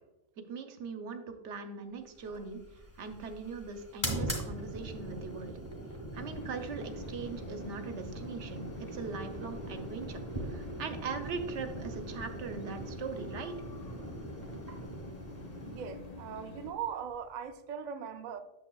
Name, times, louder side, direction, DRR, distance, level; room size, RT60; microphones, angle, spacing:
voice 1, 0.5-2.6 3.0-5.6 6.1-13.5, right 5 dB, 65° right, 1.0 m, -40 dB
sound 1, 2.2-17.5, right 1 dB, 15° left, 1.3 m, -42 dB
sound 2, 6.1-16.7, left 2 dB, 35° left, 0.8 m, -47 dB
voice 2, 15.6-18.4, right 8 dB, 85° right, 0.4 m, -40 dB
8.5 x 7.0 x 2.3 m
omnidirectional pair, 1.4 m